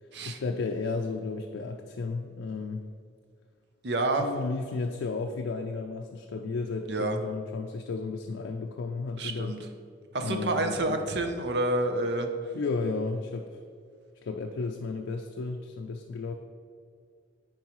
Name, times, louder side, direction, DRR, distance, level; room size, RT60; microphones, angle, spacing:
voice 1, 0.2-2.8 4.1-9.6 10.2-11.1 12.5-13.6 14.2-16.3, left 4 dB, 90° left, 3 dB, 0.4 m, -33 dB
voice 2, 3.8-4.3 6.9-7.2 9.2-9.6 10.1-12.3, right 2 dB, 60° right, 6 dB, 0.6 m, -28 dB
9.4 x 4.6 x 3.0 m, 2.3 s
head